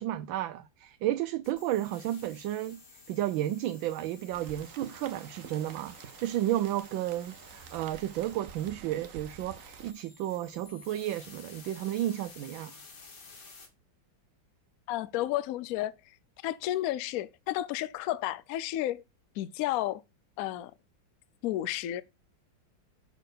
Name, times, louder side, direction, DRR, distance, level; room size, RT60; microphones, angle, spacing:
voice 1, 0.0-2.8 3.1-12.7, right 13 dB, 85° right, 1.4 m, -32 dB
sound 1, 1.4-13.7, left 4 dB, 60° left, 2.5 m, -53 dB
Rain, 4.3-9.9, right 8 dB, 60° right, 0.9 m, -48 dB
voice 2, 14.9-15.9 16.4-19.0 19.4-20.0 20.4-20.7 21.4-22.0, left 14 dB, 85° left, 0.7 m, -32 dB
6.4 x 4.3 x 6.5 m
omnidirectional pair, 2.1 m